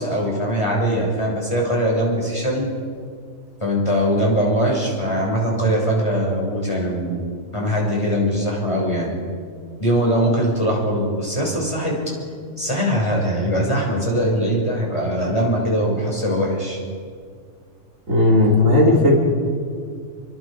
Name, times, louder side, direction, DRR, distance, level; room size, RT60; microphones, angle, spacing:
voice 1, 0.0-2.7 3.6-9.1 9.8-12.1 12.6-16.8, equal, 20° left, -2 dB, 6.7 m, -21 dB
voice 2, 18.1-19.1, left 2 dB, 60° right, -3 dB, 4.5 m, -15 dB
29.5 x 24.0 x 5.2 m, 2.1 s
omnidirectional pair, 1.6 m